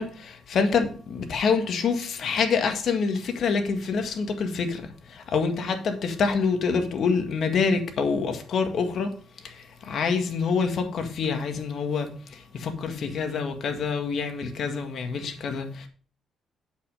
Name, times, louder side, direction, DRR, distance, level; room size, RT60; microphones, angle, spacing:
voice 1, 0.0-4.8 5.1-9.1 9.4-15.9, left 5 dB, 60° left, 1.8 m, -26 dB
8.4 x 7.7 x 4.9 m
cardioid pair, 100°, 0 cm